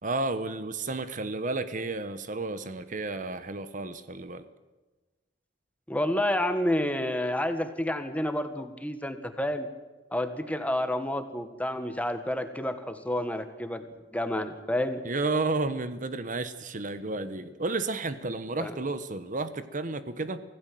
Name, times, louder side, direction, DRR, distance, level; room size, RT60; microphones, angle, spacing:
voice 1, 0.0-4.5 15.0-20.4, right 3 dB, 45° right, 12 dB, 1.1 m, -32 dB
voice 2, 5.9-9.7 10.1-13.8 14.1-15.0 18.6-18.7, left 1 dB, 10° left, 9 dB, 1.6 m, -29 dB
25.0 x 16.5 x 7.7 m, 1.2 s
head